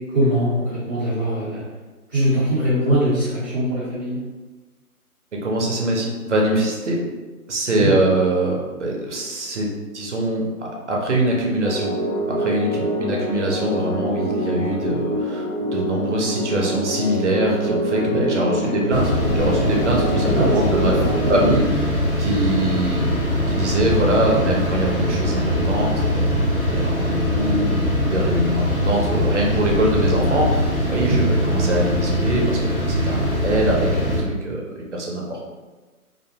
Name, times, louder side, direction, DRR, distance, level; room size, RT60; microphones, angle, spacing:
voice 1, 0.1-1.6 2.1-4.2 7.7-7.9 18.1-18.2 18.6-18.7 20.1-20.5 20.9-21.4 31.0-31.2, equal, 15° right, -12 dB, 0.9 m, -22 dB
voice 2, 5.4-7.0 7.5-12.0 12.3-21.0 21.3-23.1 23.5-26.3 26.7-35.4, right 1 dB, 50° right, -1 dB, 0.6 m, -23 dB
sound 1, 11.6-21.5, equal, 85° left, 1.3 m, -25 dB
sound 2, 18.9-34.2, equal, 40° left, 0.7 m, -22 dB
2.5 x 2.1 x 2.7 m, 1.3 s
figure-of-eight pair, 155°, 44 cm